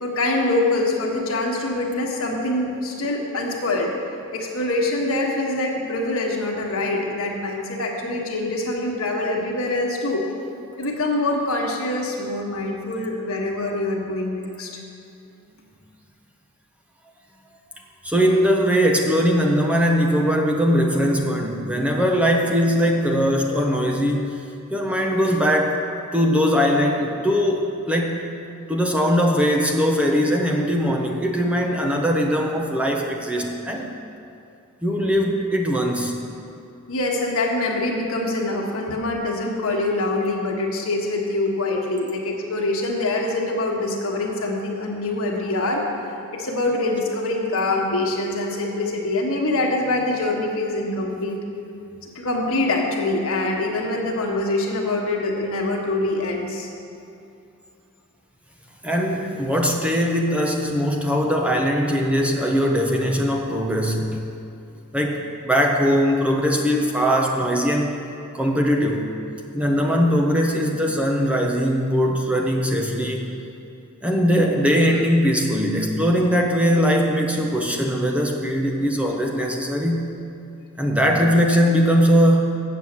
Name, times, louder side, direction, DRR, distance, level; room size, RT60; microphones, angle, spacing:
voice 1, 0.0-3.9 4.3-10.2 10.8-14.7 36.9-45.8 46.3-51.4 52.0-56.7, left 2 dB, 65° left, 0 dB, 1.4 m, -24 dB
voice 2, 18.0-24.4 24.7-25.8 26.1-28.2 28.7-33.9 34.8-36.2 58.8-64.2 64.9-68.0 68.3-69.1 69.5-73.3 74.0-80.1 80.8-82.4, equal, 5° right, 0 dB, 0.6 m, -20 dB
7.8 x 7.4 x 7.1 m, 2.6 s
head